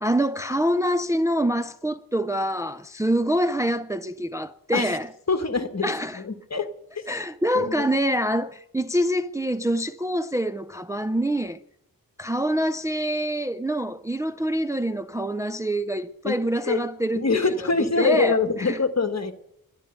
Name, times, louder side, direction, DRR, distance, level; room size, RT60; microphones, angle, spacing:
voice 1, 0.0-5.1 5.8-6.2 7.1-11.6 12.2-18.8, equal, 10° right, 0.4 m, -25 dB
voice 2, 5.3-5.9 6.1-6.7 7.5-7.9 16.2-16.4 16.6-16.8 17.2-19.3, left 4 dB, 45° left, 1.3 m, -24 dB
12.0 x 10.5 x 6.4 m
wide cardioid pair, 75°, 35 cm